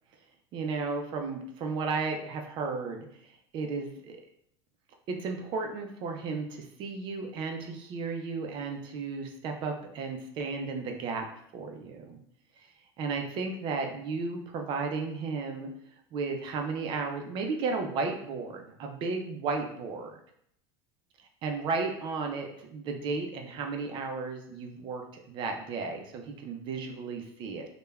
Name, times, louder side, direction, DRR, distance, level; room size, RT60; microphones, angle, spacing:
voice 1, 0.5-3.0 3.5-4.2 5.1-11.3 11.5-12.2 13.0-15.7 16.1-20.2 21.4-27.7, right 4 dB, 40° right, 3 dB, 0.4 m, -34 dB
3.2 x 2.1 x 2.2 m, 0.70 s
supercardioid pair, 140°, 13 cm